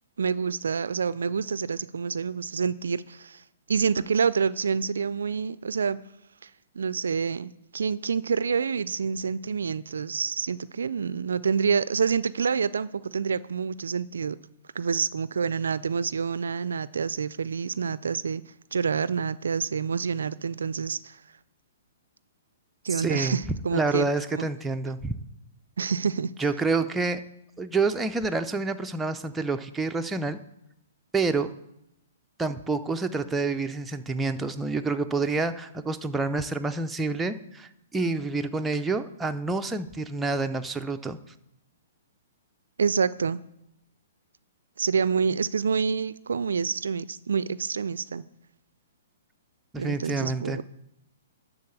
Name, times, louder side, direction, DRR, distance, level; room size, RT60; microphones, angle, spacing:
voice 1, 0.2-3.4 3.7-6.0 6.4-6.5 6.8-14.4 14.8-18.4 18.7-21.2 22.8-24.5 25.8-26.3 42.8-43.4 44.8-48.2 49.8-50.6, right 6 dB, 80° right, 18 dB, 0.3 m, -27 dB
voice 2, 22.9-23.4 23.7-25.1 26.4-27.2 27.6-30.4 31.1-31.5 32.4-41.2 49.7-50.6, right 3 dB, 10° right, 7 dB, 0.5 m, -28 dB
11.5 x 4.0 x 7.1 m, 0.84 s
hypercardioid pair, 130°, 0 cm